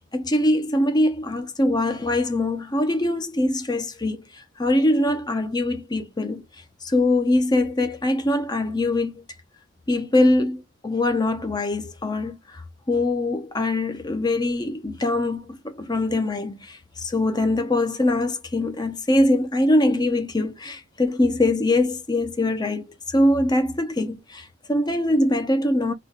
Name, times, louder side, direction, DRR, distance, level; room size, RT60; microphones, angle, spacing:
voice 1, 0.1-6.4 6.8-9.2 9.9-12.6 12.9-25.9, left 1 dB, 20° left, 0.8 m, -23 dB
3.8 x 3.1 x 3.6 m
head